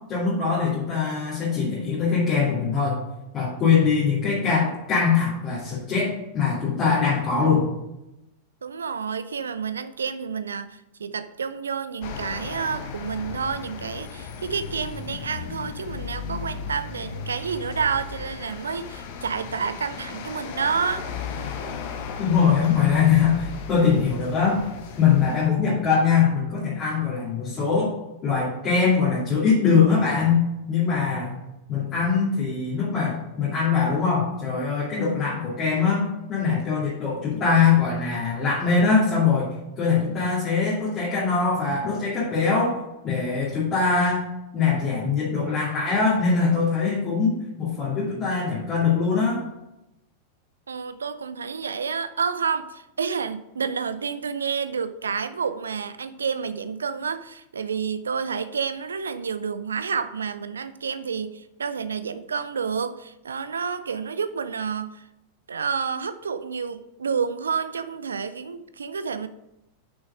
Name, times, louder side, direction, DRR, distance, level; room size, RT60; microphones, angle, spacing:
voice 1, 0.1-3.0 3.3-7.7 22.2-24.6 25.0-27.9 28.2-30.4 30.7-31.4 31.7-42.8 43.0-44.2 44.5-49.4, left 5 dB, 30° left, -8 dB, 2.5 m, -22 dB
voice 2, 8.6-21.1 50.7-65.1 65.5-69.3, right 6 dB, 70° right, 12 dB, 0.5 m, -29 dB
sound 1, 12.0-25.5, left 6 dB, 50° left, 0.9 m, -36 dB
6.3 x 6.2 x 5.2 m, 0.92 s
figure-of-eight pair, 90°, 0 cm